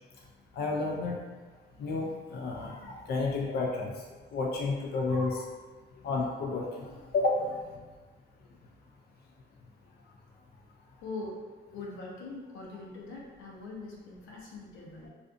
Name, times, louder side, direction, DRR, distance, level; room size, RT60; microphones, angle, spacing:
voice 1, 0.5-1.2 1.8-3.9 4.3-5.4 6.0-7.6, left 3 dB, 55° left, -1 dB, 0.4 m, -31 dB
voice 2, 11.0-11.4 11.7-15.1, left 3 dB, 90° left, -3 dB, 0.7 m, -42 dB
2.5 x 2.4 x 2.4 m, 1.3 s
cardioid pair, 90°, 20 cm